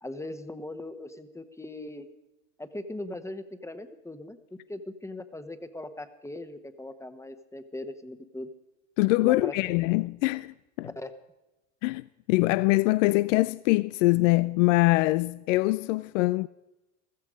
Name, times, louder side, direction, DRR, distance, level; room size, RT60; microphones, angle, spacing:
voice 1, 0.0-2.1 2.6-4.4 4.7-8.5 9.2-9.7 10.9-11.1, left 1 dB, 5° left, 1.2 m, -39 dB
voice 2, 9.0-10.9 11.8-16.5, left 21 dB, 75° left, 0.5 m, -24 dB
15.0 x 14.0 x 5.1 m
hypercardioid pair, 85°, 38 cm